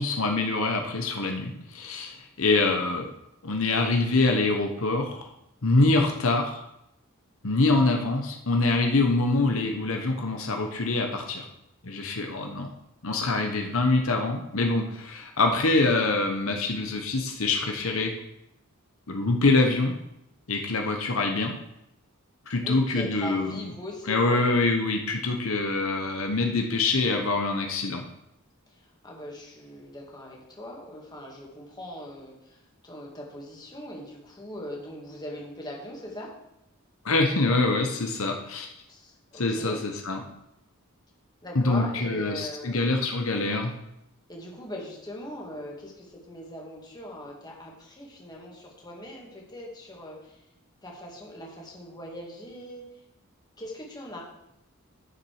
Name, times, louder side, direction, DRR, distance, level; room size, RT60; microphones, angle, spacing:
voice 1, 0.0-3.1 3.4-5.3 5.6-6.6 7.4-11.4 11.8-12.7 13.0-18.1 19.1-19.9 20.5-21.5 22.5-23.5 24.1-28.0 37.0-38.7 39.4-40.2 41.5-43.7, left 3 dB, 70° left, 3 dB, 1.1 m, -25 dB
voice 2, 22.6-24.5 28.7-36.3 38.9-39.8 41.4-43.1 44.3-50.4 50.8-53.0 53.6-54.2, left 1 dB, 20° left, -2 dB, 2.2 m, -41 dB
9.9 x 7.3 x 4.9 m, 0.83 s
head